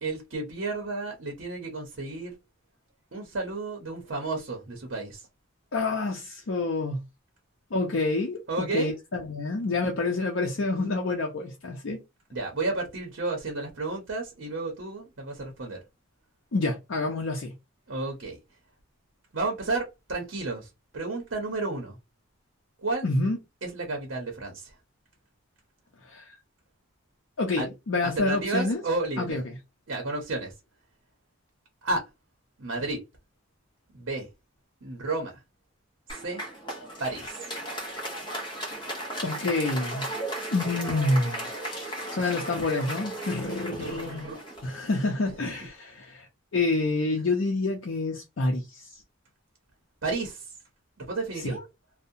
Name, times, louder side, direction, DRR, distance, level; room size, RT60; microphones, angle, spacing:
voice 1, 0.0-2.3 3.1-5.3 8.5-8.9 12.3-15.8 17.9-18.4 19.3-22.0 22.8-23.1 23.6-24.7 27.6-27.7 28.0-29.4 29.9-30.5 31.8-32.1 32.6-33.0 33.9-34.3 34.8-35.4 36.1-36.4 37.0-37.4 43.8-44.4 50.0-50.5 51.0-51.6, right 3 dB, 65° right, 0.7 m, -32 dB
voice 2, 5.7-7.0 7.7-12.0 16.5-17.5 23.0-23.4 26.0-26.4 27.4-28.8 29.2-29.5 38.6-38.8 39.2-40.2 40.5-44.3 44.6-46.3 46.5-49.0 51.4-51.6, left 2 dB, 65° left, 0.6 m, -28 dB
Applause, 36.1-45.4, right 1 dB, 20° left, 0.6 m, -36 dB
2.6 x 2.1 x 2.5 m
head